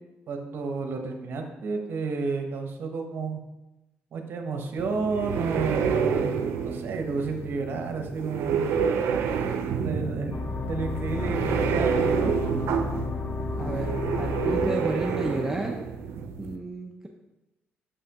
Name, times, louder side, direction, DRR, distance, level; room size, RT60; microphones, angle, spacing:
voice 1, 0.3-3.4 4.1-6.3 6.6-8.7 9.8-12.3, right 4 dB, 60° right, 4 dB, 0.8 m, -31 dB
sound 1, 4.8-16.6, right 6 dB, 90° right, 0.5 m, -28 dB
sound 2, 10.3-15.6, left 4 dB, 35° left, 0.6 m, -32 dB
voice 2, 13.6-15.9 16.3-17.1, right 2 dB, 10° right, 0 dB, 0.5 m, -32 dB
6.6 x 5.6 x 2.9 m, 1.0 s
cardioid pair, 115°, 4 cm